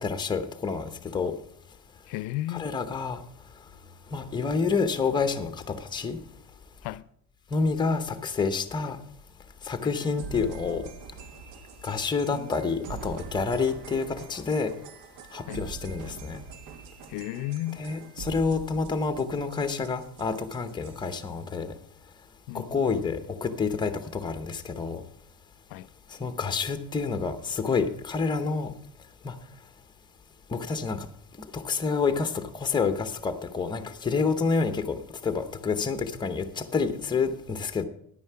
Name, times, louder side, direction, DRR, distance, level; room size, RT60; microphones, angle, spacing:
voice 1, 0.0-1.4 2.5-3.2 4.1-6.2 7.5-9.0 9.6-10.9 11.8-14.7 15.3-16.4 17.8-21.7 22.5-25.0 26.2-28.7 29.2-29.3 30.5-31.1 31.5-37.8, left 4 dB, 15° left, 0.7 m, -28 dB
voice 2, 2.1-2.7 6.8-7.0 12.3-12.5 15.5-15.6 17.1-17.8 22.5-22.8 25.7-25.9, left 15 dB, 70° left, 0.5 m, -34 dB
sound 1, 9.9-21.3, right 6 dB, 80° right, 1.0 m, -44 dB
10.0 x 9.4 x 5.6 m
cardioid pair, 170°, 34 cm